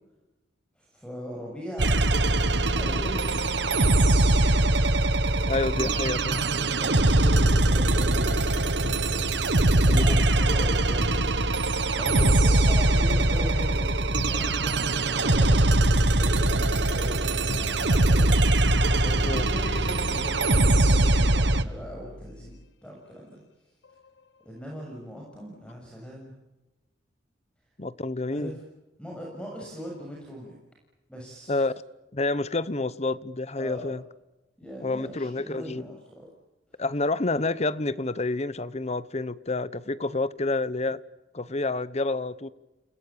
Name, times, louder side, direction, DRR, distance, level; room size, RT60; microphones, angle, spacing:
voice 1, 0.8-3.5 6.3-9.4 9.7-18.6 19.0-22.6 22.8-23.4 24.5-26.3 28.2-28.6 29.0-30.6 31.1-31.6 33.6-33.9 34.6-36.3, equal, 5° left, 7.0 m, -40 dB
sound 1, 1.8-21.6, right 2 dB, 75° right, 1.6 m, -22 dB
voice 2, 5.5-6.5 9.9-10.2 12.1-12.4 19.2-19.5 27.8-28.5 31.5-31.7 32.1-34.0 34.8-35.8 36.8-41.0 41.3-42.5, left 2 dB, 35° left, 1.0 m, -29 dB
sound 2, 8.8-11.8 12.0-16.1 16.4-17.2 17.5-18.4 18.6-22.6 23.8-24.1, left 2 dB, 70° left, 1.0 m, -37 dB
29.5 x 20.5 x 8.7 m
head